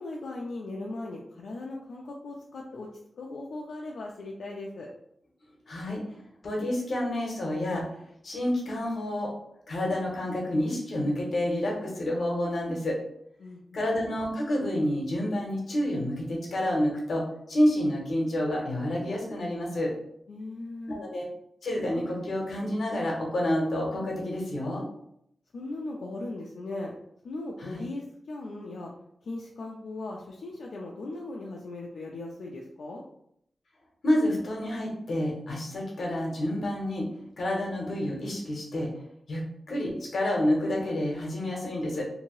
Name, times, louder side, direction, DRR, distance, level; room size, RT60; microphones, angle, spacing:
voice 1, 0.0-2.9 3.2-4.9 13.4-13.9 20.3-21.0 25.5-26.9 27.2-28.9 29.2-33.0, left 2 dB, 80° left, -2 dB, 0.4 m, -38 dB
voice 2, 5.7-6.0 6.4-7.8 8.2-9.3 9.7-13.0 13.7-19.9 20.9-21.3 21.6-24.9 27.6-27.8 34.0-37.0 37.4-38.9 39.3-42.1, left 1 dB, 65° left, -2 dB, 0.9 m, -29 dB
2.8 x 2.6 x 3.0 m, 0.72 s
wide cardioid pair, 175°, 0 cm